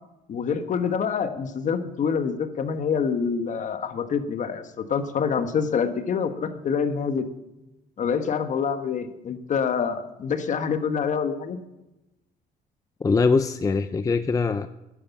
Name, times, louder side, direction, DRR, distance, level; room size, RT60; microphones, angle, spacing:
voice 1, 0.3-7.3 8.0-11.6, left 6 dB, 45° left, 8 dB, 1.3 m, -26 dB
voice 2, 13.0-14.7, left 4 dB, 20° left, 11 dB, 0.5 m, -22 dB
12.5 x 10.0 x 7.2 m, 0.99 s
cardioid pair, 110°, 17 cm